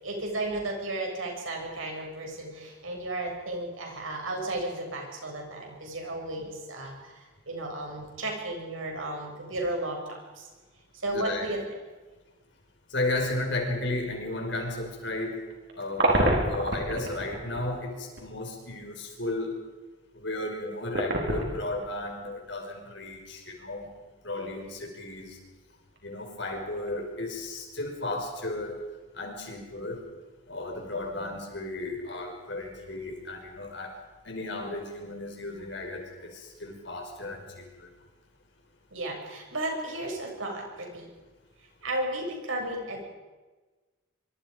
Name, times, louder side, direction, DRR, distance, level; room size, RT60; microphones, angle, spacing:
voice 1, 0.0-10.5 10.9-11.6 30.9-31.3 38.9-41.1 41.8-43.1, right 1 dB, 85° right, 1 dB, 7.2 m, -34 dB
voice 2, 11.1-11.5 12.9-15.4 15.8-19.5 20.2-23.9 24.2-25.3 26.0-28.8 29.2-30.0 30.5-33.9 34.3-36.3 36.6-37.5 37.8-37.9, left 2 dB, 60° left, 3 dB, 5.3 m, -34 dB
sound 1, 15.3-17.6 18.2-18.3 20.8-22.0 22.3-22.4 26.0-26.4 26.8-26.9, right 1 dB, 55° right, 4.8 m, -27 dB
25.5 x 25.0 x 5.2 m, 1.2 s
head